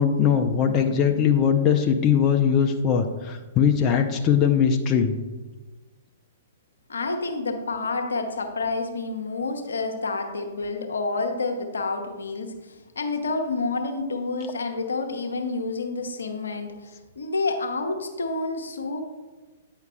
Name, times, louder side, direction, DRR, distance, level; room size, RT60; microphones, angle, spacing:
voice 1, 0.0-5.1, left 7 dB, 25° left, 4 dB, 0.5 m, -20 dB
voice 2, 6.9-19.0, left 3 dB, 70° left, 5 dB, 0.8 m, -29 dB
9.3 x 5.7 x 2.3 m, 1.2 s
figure-of-eight pair, 115°, 0 cm